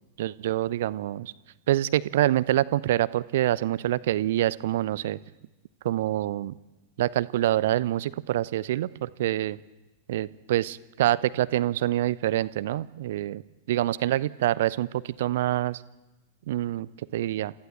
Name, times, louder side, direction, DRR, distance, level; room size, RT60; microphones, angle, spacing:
voice 1, 0.2-1.3 1.7-5.2 5.8-6.5 7.0-9.6 10.1-13.4 13.7-15.8 16.5-17.5, right 14 dB, 55° right, 19 dB, 0.7 m, -26 dB
29.0 x 15.0 x 8.3 m, 1.1 s
figure-of-eight pair, 90°, 0 cm